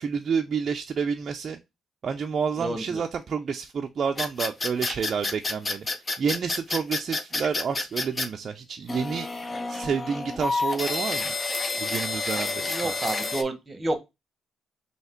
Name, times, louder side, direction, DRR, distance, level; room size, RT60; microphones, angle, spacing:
voice 1, 0.0-1.6 2.0-5.9 6.2-9.3 9.7-11.3 11.8-12.9, right 6 dB, 50° right, 0.4 m, -29 dB
voice 2, 2.6-3.0 12.6-14.0, right 2 dB, 25° right, 1.0 m, -30 dB
sound 1, 4.2-8.3 8.9-13.4, left 3 dB, 25° left, 0.6 m, -29 dB
3.3 x 2.8 x 4.2 m
cardioid pair, 90°, 0 cm